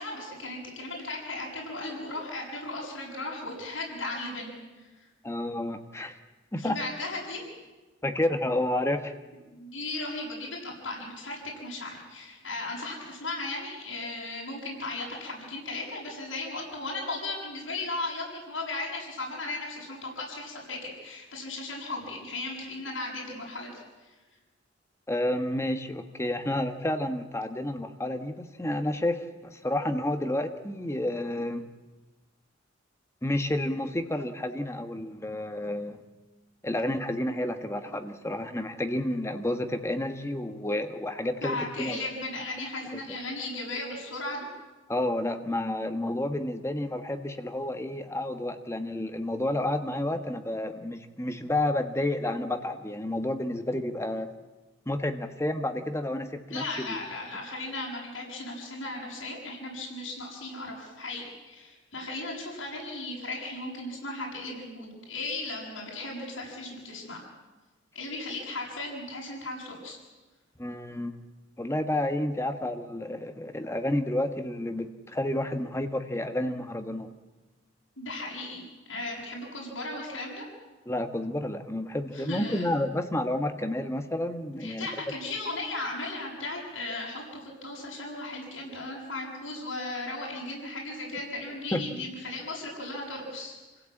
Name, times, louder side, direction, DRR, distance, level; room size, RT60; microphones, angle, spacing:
voice 1, 0.0-5.1 6.6-7.4 9.5-24.1 41.4-44.5 56.5-67.2 68.0-70.0 78.0-80.4 82.1-82.7 84.6-93.6, left 2 dB, 75° left, -3 dB, 7.0 m, -36 dB
voice 2, 5.2-6.1 6.5-6.8 8.0-9.1 25.1-31.6 33.2-36.0 36.6-42.0 42.9-43.0 44.9-54.3 54.9-57.0 70.6-71.2 71.6-77.1 80.9-84.9 91.7-91.8, left 1 dB, 15° left, 7 dB, 1.3 m, -30 dB
27.5 x 16.5 x 8.7 m, 1.2 s
head